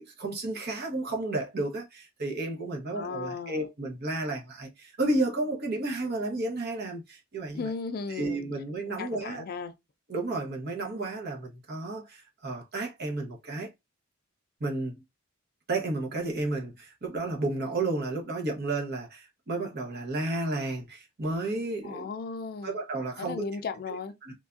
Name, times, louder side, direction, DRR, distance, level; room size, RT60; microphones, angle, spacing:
voice 1, 0.0-7.7 8.1-9.4 10.1-13.7 14.6-15.0 15.7-22.1 22.6-23.5 24.2-24.3, right 2 dB, 50° right, 0.9 m, -32 dB
voice 2, 2.9-3.6 7.5-8.4 9.0-9.7 21.8-22.8 23.2-24.2, left 4 dB, 45° left, 0.4 m, -36 dB
3.3 x 2.3 x 2.4 m
head